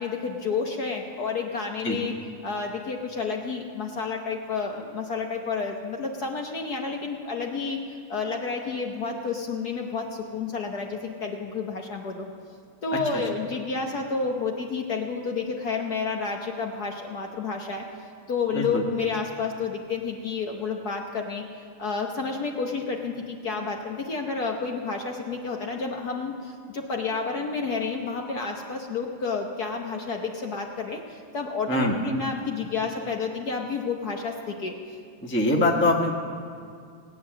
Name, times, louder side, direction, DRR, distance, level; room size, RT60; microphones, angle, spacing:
voice 1, 0.0-2.1 2.4-12.3 12.8-17.8 18.3-34.8, left 4 dB, 55° left, 1 dB, 1.3 m, -30 dB
voice 2, 12.9-13.2 18.5-18.8 31.7-31.9 35.2-36.1, left 2 dB, 10° left, 0 dB, 0.9 m, -23 dB
18.0 x 9.4 x 7.4 m, 2.3 s
omnidirectional pair, 2.4 m